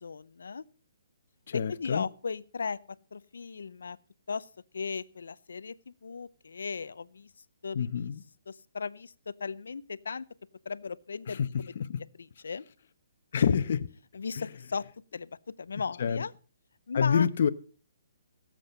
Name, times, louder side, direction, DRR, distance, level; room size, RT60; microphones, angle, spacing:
voice 1, 0.0-0.6 1.5-2.8 3.1-4.0 4.3-4.5 4.7-7.3 7.6-8.1 8.5-10.2 10.7-11.7 12.2-12.6 14.1-14.8 15.1-16.3 16.9-17.3, left 5 dB, 80° left, 0.6 m, -37 dB
voice 2, 1.5-2.1 7.7-8.2 11.3-12.0 13.3-13.9 14.4-14.5 16.0-16.2 16.9-17.5, left 7 dB, 55° left, 0.9 m, -27 dB
17.0 x 7.6 x 5.4 m
hypercardioid pair, 155°, 0 cm